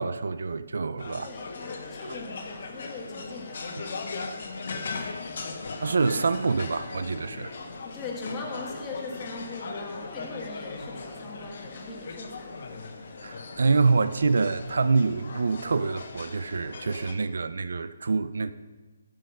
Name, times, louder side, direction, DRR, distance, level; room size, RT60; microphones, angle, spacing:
voice 1, 0.0-1.3 4.9-5.2 5.8-7.5 13.2-18.5, right 4 dB, 65° right, 0.6 m, -26 dB
sound 1, 1.0-17.1, left 4 dB, 40° left, 1.1 m, -39 dB
voice 2, 1.2-4.0 7.8-12.8, left 3 dB, 10° left, 1.4 m, -40 dB
14.0 x 6.4 x 5.2 m
hypercardioid pair, 175°, 0 cm